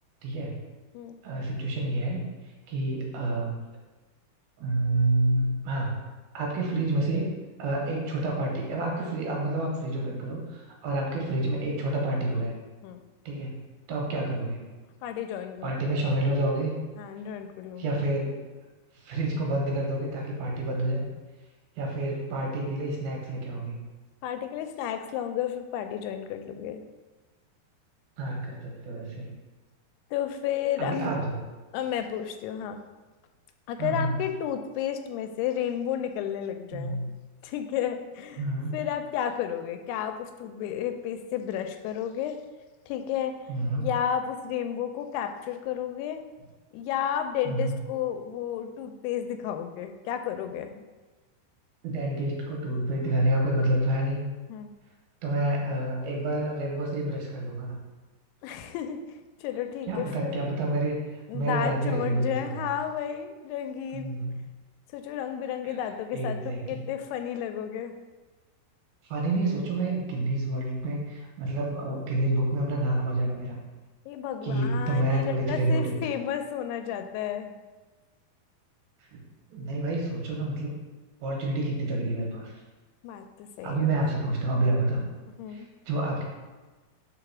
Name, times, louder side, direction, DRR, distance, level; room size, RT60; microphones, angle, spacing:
voice 1, 0.2-0.6 1.2-2.2 2.7-3.5 4.6-5.9 6.3-7.3 7.6-12.5 13.3-13.5 13.9-14.6 15.6-16.7 17.8-18.3 18.9-21.0 21.8-23.7 28.2-29.3 30.8-31.4 33.8-34.1 36.7-37.1 38.4-38.7 43.5-43.9 47.4-47.8 51.8-54.2 55.2-57.8 59.9-60.9 61.3-62.7 63.9-64.4 65.6-65.8 66.1-66.8 69.0-73.6 74.4-76.0 79.5-80.7 81.2-82.5 83.6-85.0 85.5-86.2, right 1 dB, 75° right, -1 dB, 2.9 m, -28 dB
voice 2, 15.0-15.7 17.0-17.9 24.2-26.8 30.1-31.1 31.7-32.8 33.7-37.0 37.4-38.4 38.7-42.4 42.9-43.4 43.8-46.2 46.7-50.9 54.5-54.7 58.4-59.0 59.4-60.4 61.3-64.2 64.9-67.9 74.1-77.6 83.0-83.9 85.4-85.7, left 9 dB, 85° left, 7 dB, 2.6 m, -32 dB
4.9 x 4.9 x 5.9 m, 1.3 s
omnidirectional pair, 4.6 m